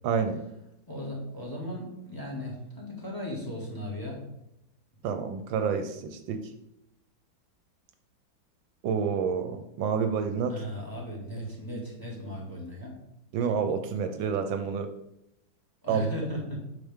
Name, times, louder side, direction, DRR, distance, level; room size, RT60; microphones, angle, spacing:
voice 1, 0.0-0.4 5.0-6.4 8.8-10.6 13.3-14.9 15.9-16.0, right 6 dB, 75° right, 7 dB, 1.4 m, -28 dB
voice 2, 0.9-4.2 10.5-12.9 15.8-16.6, equal, 10° left, -2 dB, 2.1 m, -36 dB
8.6 x 6.0 x 3.6 m, 0.83 s
omnidirectional pair, 2.2 m